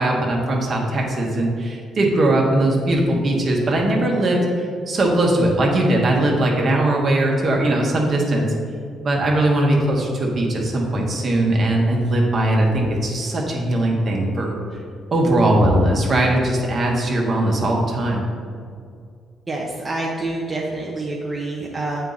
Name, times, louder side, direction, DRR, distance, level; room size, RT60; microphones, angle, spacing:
voice 1, 0.0-8.5 9.0-14.6 15.1-18.2, right 1 dB, 50° right, 0 dB, 1.2 m, -19 dB
voice 2, 19.5-22.1, right 2 dB, 25° right, -3 dB, 0.9 m, -27 dB
7.2 x 4.4 x 4.0 m, 2.3 s
cardioid pair, 90°, 0 cm